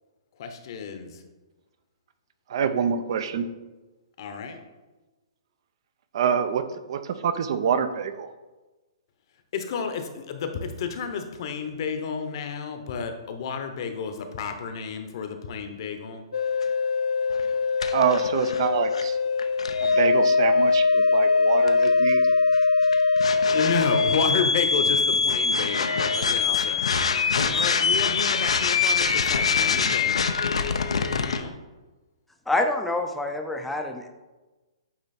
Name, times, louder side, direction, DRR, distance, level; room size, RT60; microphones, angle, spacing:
voice 1, 0.4-1.2 4.2-4.6 9.5-16.2 23.4-30.2 31.1-31.6, left 6 dB, 50° left, 7 dB, 0.8 m, -31 dB
voice 2, 2.5-3.5 6.1-8.3 17.9-19.2 19.8-22.2 26.4-26.6 27.4-27.5, right 7 dB, 55° right, 11 dB, 0.5 m, -26 dB
sound 1, 16.3-31.4, left 4 dB, 85° left, 0.5 m, -22 dB
voice 3, 32.5-34.1, left 2 dB, 5° left, 4 dB, 0.5 m, -26 dB
8.7 x 3.0 x 4.2 m, 1.2 s
hypercardioid pair, 150°, 3 cm